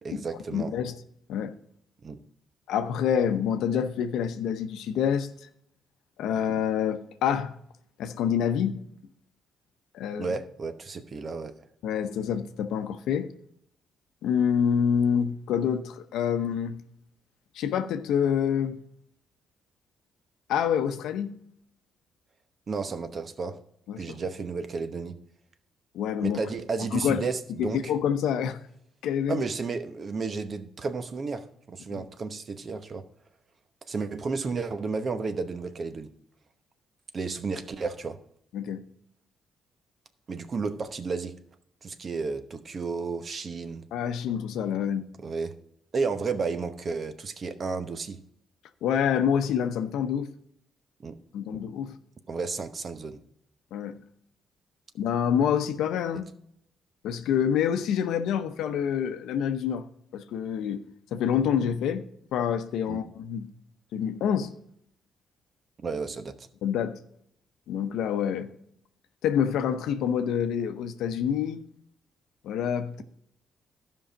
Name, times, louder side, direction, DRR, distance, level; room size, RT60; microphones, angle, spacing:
voice 1, 0.0-0.7 2.0-2.2 10.2-11.5 22.7-23.6 24.0-25.2 26.2-27.9 29.3-33.0 33.9-36.1 37.1-38.2 40.3-41.3 41.8-43.8 45.2-45.5 45.9-48.2 51.0-51.1 51.5-51.6 52.3-53.2 62.9-63.0 65.8-66.5, right 4 dB, 45° right, 0.9 m, -32 dB
voice 2, 0.5-1.0 1.3-1.5 2.7-5.3 6.2-7.6 8.0-8.8 9.9-10.3 11.8-13.3 14.2-16.8 17.5-18.8 20.5-21.4 23.9-24.0 25.9-26.4 26.9-27.3 27.6-28.6 29.0-29.4 31.9-32.0 38.5-38.8 43.9-45.1 48.8-50.3 51.3-51.9 53.7-54.0 55.0-56.3 57.0-59.9 60.1-60.8 61.1-62.0 62.3-63.5 63.9-64.5 66.6-67.0 67.7-68.5 69.2-71.6 72.4-73.0, left 8 dB, 85° left, 0.7 m, -27 dB
12.5 x 5.6 x 5.1 m
cardioid pair, 90°, 0 cm